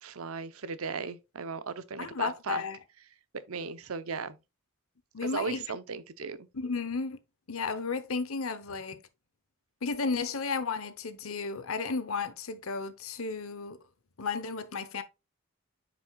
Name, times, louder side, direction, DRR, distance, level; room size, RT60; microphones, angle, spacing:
voice 1, 0.0-2.6 3.3-4.4 5.2-6.5, right 5 dB, 85° right, 0.7 m, -37 dB
voice 2, 2.0-2.8 5.1-5.6 6.5-7.2 7.5-9.0 9.8-13.8 14.2-15.0, left 4 dB, 80° left, 0.9 m, -33 dB
9.4 x 5.1 x 2.3 m
head